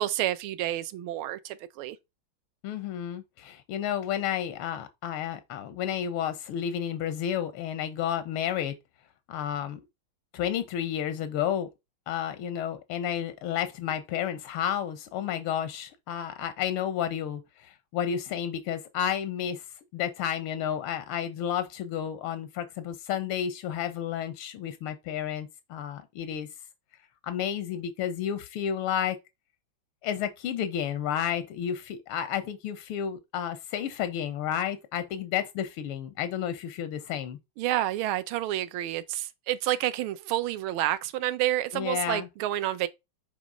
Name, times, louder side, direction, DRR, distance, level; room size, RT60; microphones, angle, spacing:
voice 1, 0.0-2.0 37.6-42.9, right 14 dB, 80° right, 1.5 m, -29 dB
voice 2, 2.6-8.7 9.3-9.8 10.3-11.7 12.1-19.6 19.9-26.5 27.2-29.2 30.0-37.4 41.7-42.3, left 9 dB, 90° left, 1.6 m, -31 dB
7.5 x 3.0 x 5.2 m
omnidirectional pair, 2.3 m